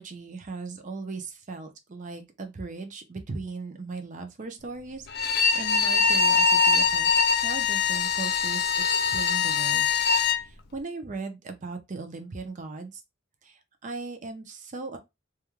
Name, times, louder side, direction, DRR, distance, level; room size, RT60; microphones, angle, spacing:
voice 1, 0.0-7.1 7.3-9.9 10.3-13.0 13.4-15.0, right 3 dB, 40° right, 0.5 m, -38 dB
Bowed string instrument, 5.1-10.4, left 5 dB, 50° left, 0.4 m, -23 dB
2.3 x 2.2 x 2.9 m
head